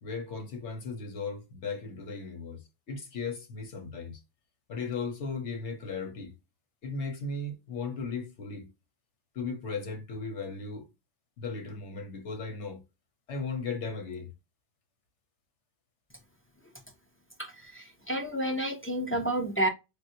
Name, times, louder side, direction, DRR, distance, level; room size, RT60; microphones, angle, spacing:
voice 1, 0.0-4.2 4.7-6.3 6.8-8.7 9.3-10.9 11.4-12.8 13.3-14.3, left 4 dB, 85° left, 1.1 m, -36 dB
voice 2, 17.4-19.7, right 1 dB, 20° left, 0.3 m, -30 dB
3.7 x 2.2 x 2.6 m
omnidirectional pair, 1.2 m